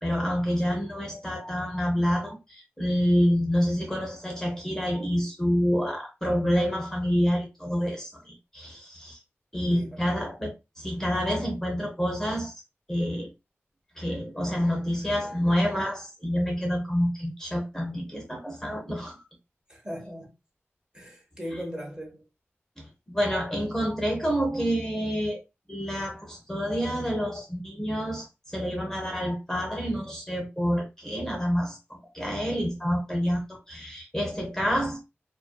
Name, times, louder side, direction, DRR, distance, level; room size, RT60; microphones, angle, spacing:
voice 1, 0.0-9.2 9.5-12.5 12.9-13.3 14.0-19.2 22.8-25.4 25.7-35.0, equal, 10° left, 0.8 m, -28 dB
voice 2, 9.7-10.2 19.7-20.3 20.9-22.3, equal, 20° right, 1.1 m, -39 dB
2.5 x 2.2 x 2.2 m
cardioid pair, 40°, 5 cm